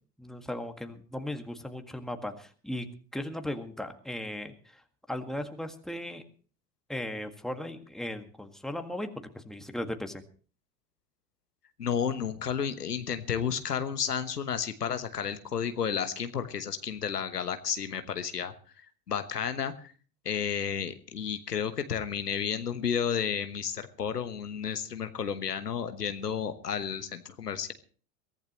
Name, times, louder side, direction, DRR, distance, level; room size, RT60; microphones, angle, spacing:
voice 1, 0.2-2.9 3.1-4.8 5.1-6.2 6.9-9.1 9.3-10.2, left 1 dB, ahead, 6 dB, 1.8 m, -37 dB
voice 2, 11.8-18.5 19.1-19.9 20.2-27.7, left 7 dB, 90° left, 10 dB, 1.2 m, -32 dB
22.5 x 15.0 x 3.0 m, 0.41 s
hypercardioid pair, 75°, 46 cm